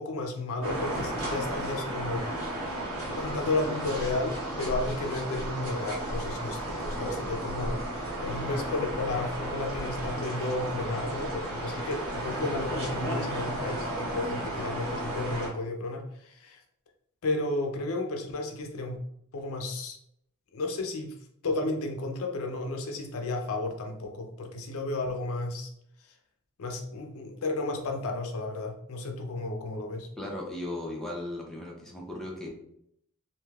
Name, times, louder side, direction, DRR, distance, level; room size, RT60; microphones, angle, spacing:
voice 1, 0.0-2.3 3.1-7.8 8.2-16.6 17.2-19.0 19.3-20.0 20.5-21.1 21.4-25.7 26.6-30.1, left 2 dB, 65° left, 3 dB, 0.5 m, -33 dB
sound 1, 0.6-15.5, right 1 dB, 65° right, 1.1 m, -34 dB
voice 2, 30.2-32.5, left 1 dB, ahead, -3 dB, 0.5 m, -36 dB
3.2 x 2.6 x 2.3 m, 0.73 s
head